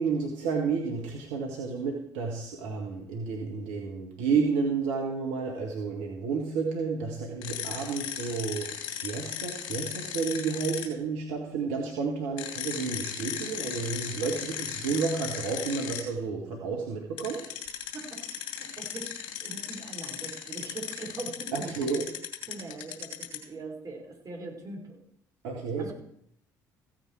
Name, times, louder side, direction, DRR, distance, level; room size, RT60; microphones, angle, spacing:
voice 1, 0.0-17.5 21.5-22.1 25.4-25.9, right 5 dB, 70° right, 0 dB, 1.7 m, -31 dB
sound 1, 7.4-10.8 12.4-16.0 17.2-23.4, left 9 dB, 60° left, 2.9 m, -36 dB
voice 2, 17.9-21.7 22.5-25.0 25.8-25.9, right 3 dB, 40° right, 0 dB, 5.1 m, -42 dB
15.5 x 9.1 x 4.7 m, 0.73 s
hypercardioid pair, 50°, 10 cm